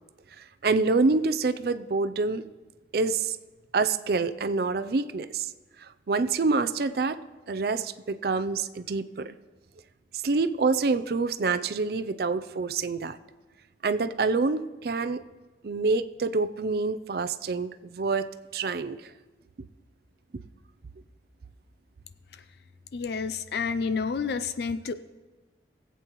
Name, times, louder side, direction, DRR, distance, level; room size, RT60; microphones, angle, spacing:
voice 1, 0.4-2.4 2.9-3.4 3.7-5.5 5.8-7.2 7.5-9.3 10.1-13.2 13.8-15.2 15.6-19.1, right 4 dB, 60° right, 12 dB, 0.4 m, -27 dB
voice 2, 22.9-24.9, left 5 dB, 60° left, 13 dB, 0.4 m, -30 dB
20.0 x 8.2 x 3.1 m, 1.2 s
head